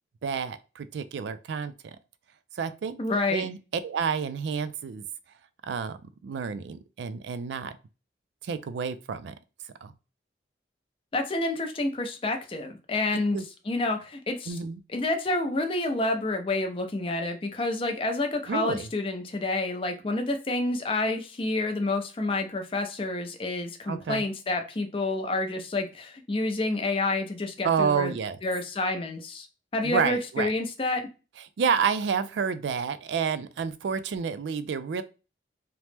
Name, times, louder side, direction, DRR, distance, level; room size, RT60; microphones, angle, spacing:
voice 1, 0.2-1.7 2.5-3.0 3.3-5.0 5.7-6.0 6.2-7.7 8.4-9.3 9.8-9.9 13.3-13.4 14.5-14.8 18.5-18.9 23.9-24.2 27.6-28.4 29.8-30.5 31.6-35.0, right 6 dB, 85° right, 0.3 m, -29 dB
voice 2, 3.0-3.4 11.1-13.4 13.7-14.6 14.9-28.1 28.4-29.5 29.7-31.0, left 2 dB, 30° left, 0.4 m, -28 dB
2.9 x 2.1 x 3.2 m
head